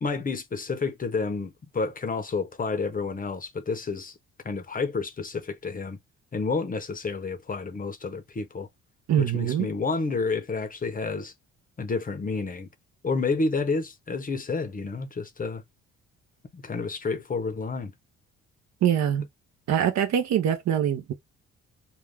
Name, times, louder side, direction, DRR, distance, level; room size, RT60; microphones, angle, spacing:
voice 1, 0.0-4.1 4.4-6.0 6.3-8.7 9.2-11.3 11.8-12.7 13.0-15.6 16.5-17.9, left 4 dB, 30° left, 0.6 m, -30 dB
voice 2, 9.1-9.7 18.8-19.3 19.7-21.1, right 9 dB, 65° right, 0.6 m, -23 dB
2.5 x 2.3 x 3.3 m
cardioid pair, 90°, 30 cm